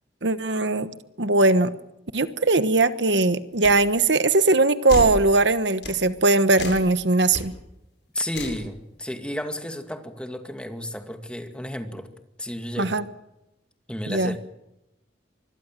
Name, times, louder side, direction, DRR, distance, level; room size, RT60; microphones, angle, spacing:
voice 1, 0.2-0.9 1.2-1.7 2.1-7.5 12.8-13.0 14.1-14.3, right 2 dB, 70° right, 12 dB, 1.2 m, -20 dB
sound 1, 3.6-3.8 4.9-5.2 5.8-6.0 6.5-6.9 7.3-7.4 8.3-8.6, left 1 dB, 65° left, 7.3 m, -30 dB
voice 2, 8.1-12.1 12.4-13.0 13.9-14.4, left 1 dB, 5° left, 6 dB, 2.3 m, -32 dB
25.0 x 22.0 x 7.6 m, 0.91 s
head